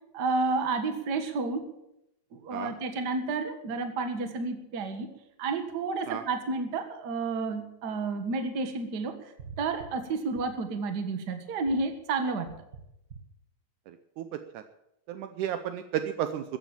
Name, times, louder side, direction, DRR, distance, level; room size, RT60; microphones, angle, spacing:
voice 1, 0.1-1.6 2.4-5.1 5.4-9.1 9.6-12.5, right 3 dB, 40° right, 7 dB, 1.6 m, -30 dB
voice 2, 13.9-14.6 15.1-16.6, right 10 dB, 75° right, 9 dB, 2.0 m, -33 dB
14.5 x 9.5 x 8.8 m, 0.84 s
omnidirectional pair, 3.9 m